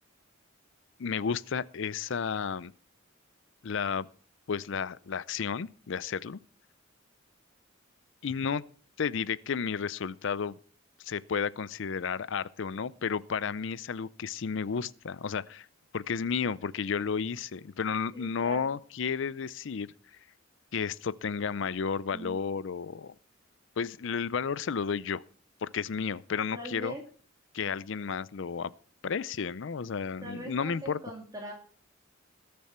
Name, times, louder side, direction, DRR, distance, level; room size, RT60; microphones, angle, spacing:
voice 1, 1.0-2.7 3.6-4.1 4.5-6.4 8.2-8.6 9.0-10.6 11.0-15.7 15.9-19.9 20.7-23.1 23.8-25.2 25.6-27.0 27.5-28.7 29.0-31.0, left 6 dB, 60° left, 0.5 m, -32 dB
voice 2, 18.1-18.7 22.1-22.5 26.5-27.0 30.2-31.5, right 1 dB, 20° right, 2.0 m, -42 dB
20.5 x 6.9 x 4.3 m
head